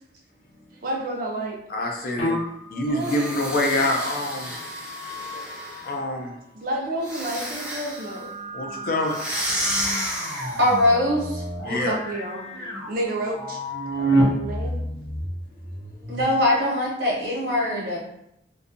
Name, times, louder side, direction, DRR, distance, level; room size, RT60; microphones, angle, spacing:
voice 1, 0.8-1.6 2.7-3.3 5.3-5.4 6.5-8.3 9.8-10.2 11.7-12.4 12.9-13.6 14.1-14.8, right 1 dB, 55° right, 1 dB, 0.5 m, -30 dB
voice 2, 1.7-2.4 2.7-4.6 5.8-6.3 8.5-9.2 11.6-12.0 12.6-12.7, left 1 dB, 55° left, 2 dB, 0.5 m, -26 dB
sound 1, 2.1-6.2 7.8-16.2, right 1 dB, 90° left, 0.7 m, -30 dB
sound 2, 2.9-5.9 7.0-8.2 9.1-10.8, equal, 5° right, 0.5 m, -31 dB
voice 3, 10.6-11.4 16.1-18.0, left 1 dB, 75° right, -3 dB, 0.9 m, -22 dB
2.6 x 2.3 x 2.5 m, 0.78 s
head